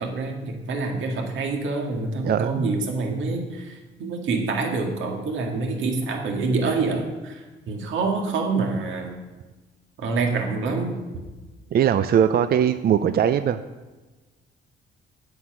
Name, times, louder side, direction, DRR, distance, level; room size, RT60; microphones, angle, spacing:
voice 1, 0.0-9.2 10.0-11.0, right 3 dB, 75° right, 2 dB, 1.9 m, -26 dB
voice 2, 2.2-2.7 11.7-13.6, right 8 dB, 50° right, 11 dB, 0.5 m, -20 dB
9.4 x 7.9 x 6.1 m, 1.2 s
cardioid pair, 90°, 20 cm